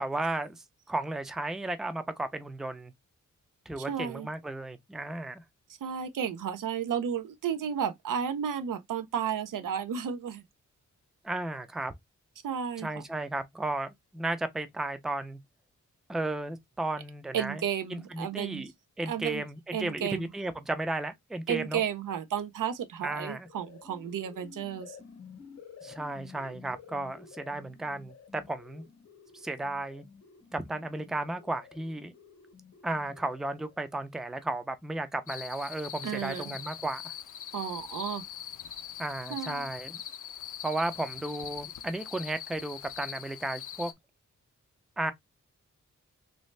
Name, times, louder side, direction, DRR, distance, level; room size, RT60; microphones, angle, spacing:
voice 1, 0.0-2.9 3.7-5.4 11.2-11.9 12.8-15.4 16.1-17.6 17.9-18.7 19.0-21.8 23.0-23.5 25.8-28.8 29.3-30.0 30.5-32.1 32.8-37.1 39.0-40.0 40.6-43.9 45.0-45.1, right 2 dB, ahead, 0.4 m, -34 dB
voice 2, 3.8-4.3 5.8-10.4 12.4-12.9 17.3-18.6 19.1-19.4 19.7-20.3 21.5-25.0 36.0-36.6 37.5-38.2 39.3-39.7, right 8 dB, 85° right, 0.6 m, -33 dB
sound 1, 23.3-33.8, left 6 dB, 55° left, 0.8 m, -52 dB
sound 2, 35.3-43.9, left 10 dB, 75° left, 0.5 m, -42 dB
3.1 x 2.7 x 3.1 m
wide cardioid pair, 125°, 31 cm